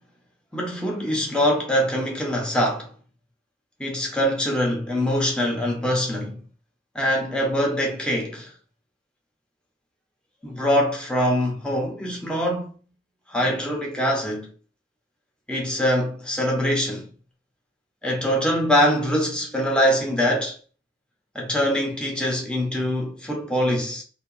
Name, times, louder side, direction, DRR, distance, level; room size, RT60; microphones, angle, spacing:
voice 1, 0.5-2.9 3.8-6.4 6.9-8.5 10.4-12.7 13.3-14.5 15.5-17.1 18.0-20.6 21.3-24.0, equal, 5° left, 0.7 m, -23 dB
2.7 x 2.2 x 2.4 m
head